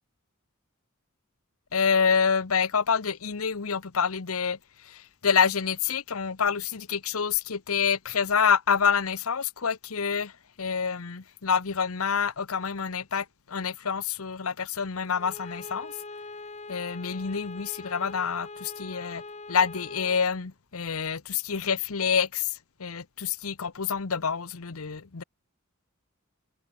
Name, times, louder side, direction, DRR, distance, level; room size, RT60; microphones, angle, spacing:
voice 1, 1.7-15.9 16.7-19.2 19.5-25.2, left 6 dB, 80° left, 0.9 m, -27 dB
Bowed string instrument, 15.1-20.3, left 3 dB, 30° left, 1.6 m, -42 dB
head